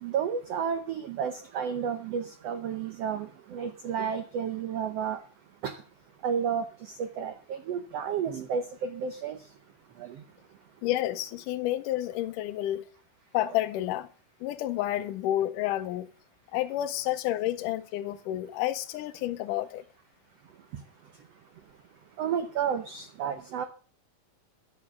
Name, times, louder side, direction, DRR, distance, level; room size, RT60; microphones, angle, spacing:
voice 1, 0.0-5.2 5.6-5.8 6.2-9.4 10.0-10.2 13.5-13.6 20.7-20.8 22.2-23.6, right 7 dB, 80° right, 1.4 m, -32 dB
voice 2, 10.8-12.8 13.3-14.1 14.4-16.1 16.5-19.8, left 14 dB, 75° left, 2.2 m, -30 dB
11.5 x 8.4 x 6.1 m
omnidirectional pair, 4.0 m